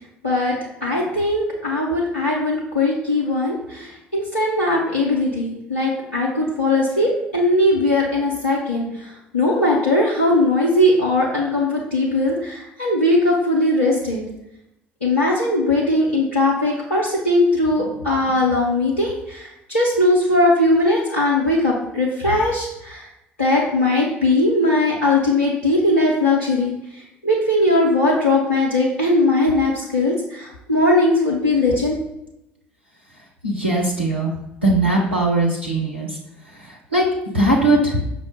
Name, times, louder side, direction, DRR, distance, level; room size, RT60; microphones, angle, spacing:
voice 1, 0.2-0.5 0.8-14.2 15.0-23.1 23.4-32.0, left 2 dB, 85° left, -5 dB, 0.6 m, -19 dB
voice 2, 33.4-34.3 34.6-36.2 36.5-37.0 37.3-38.0, right 2 dB, 85° right, -3 dB, 0.6 m, -19 dB
5.3 x 2.0 x 4.7 m, 0.85 s
figure-of-eight pair, 55°, 6 cm